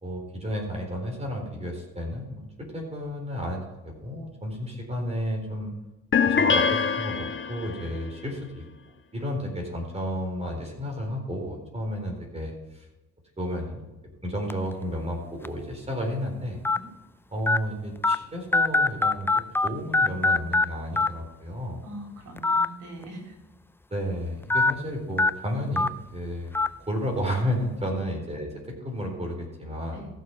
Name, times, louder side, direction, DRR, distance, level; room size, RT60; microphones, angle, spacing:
voice 1, 0.0-5.7 6.2-8.6 9.1-12.9 13.4-13.8 14.2-16.6 17.3-21.8 23.9-26.5 26.8-30.1, equal, 20° right, 0 dB, 4.1 m, -32 dB
sound 1, 6.1-7.9, left 5 dB, 40° left, 1.3 m, -23 dB
sound 2, 14.5-14.7 15.4-15.5 16.6-16.8 17.5-17.6 18.0-18.1 18.5-19.7 19.9-20.6 21.0-21.1 22.4-22.6 23.0-23.1 24.5-24.7 25.2-25.3 25.8-25.9 26.5-26.7, left 3 dB, 10° left, 0.4 m, -21 dB
voice 2, 21.8-23.4 27.9-28.1 29.9-30.1, right 1 dB, 75° right, 1 dB, 4.1 m, -42 dB
14.5 x 6.5 x 5.9 m, 1.0 s
cardioid pair, 90°, 30 cm